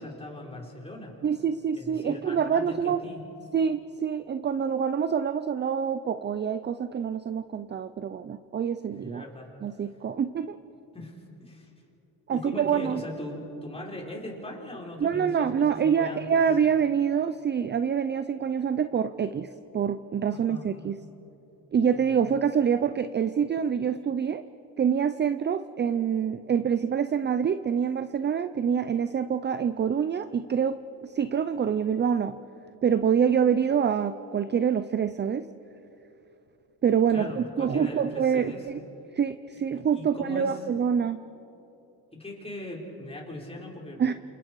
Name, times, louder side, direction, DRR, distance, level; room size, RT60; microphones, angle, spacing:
voice 1, 0.0-1.1 1.7-3.2 9.0-9.5 10.9-11.7 12.3-16.4 20.3-20.7 21.9-22.0 37.1-38.6 39.5-40.6 42.1-44.0, left 1 dB, 15° left, -2 dB, 4.9 m, -40 dB
voice 2, 1.2-3.0 3.5-9.2 9.6-10.6 12.3-13.0 15.0-21.0 21.7-24.4 24.8-32.4 32.8-35.5 36.8-38.8 39.1-41.2 44.0-44.1, right 7 dB, 25° right, 12 dB, 0.6 m, -26 dB
28.5 x 28.0 x 4.8 m, 3.0 s
cardioid pair, 110°, 42 cm